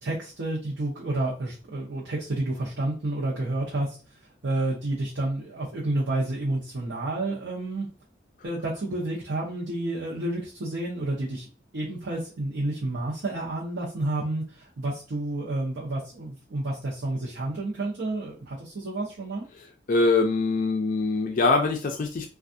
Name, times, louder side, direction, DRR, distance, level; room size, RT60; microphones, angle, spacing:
voice 1, 0.0-4.0 4.4-7.9 8.4-11.5 11.7-19.4, right 2 dB, 80° right, -5 dB, 0.7 m, -30 dB
voice 2, 19.6-22.3, left 3 dB, 45° left, 3 dB, 0.4 m, -24 dB
3.4 x 2.4 x 2.6 m, 0.36 s
head